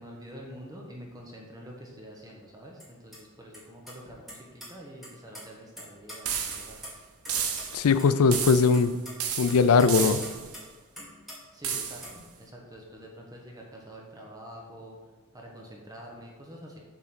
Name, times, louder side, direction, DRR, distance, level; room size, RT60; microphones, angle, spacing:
voice 1, 0.0-6.8 11.5-15.0 15.3-16.8, equal, 15° right, -1 dB, 0.9 m, -46 dB
sound 1, 2.8-2.9 3.1-3.2 3.5-3.6 3.9-4.7 5.0-5.4 5.8-7.3 7.6-7.7 8.0-8.4 8.7-10.7 11.0-11.4 11.7-12.2, equal, ahead, 1.9 m, -43 dB
sound 2, 6.2-6.8 7.3-7.9 8.3-8.9 9.2-10.5 11.6-12.1, right 7 dB, 80° right, 0.8 m, -32 dB
voice 2, 7.7-9.0 9.4-10.2, left 5 dB, 70° left, 13 dB, 0.4 m, -20 dB
7.4 x 3.7 x 6.1 m, 1.3 s
head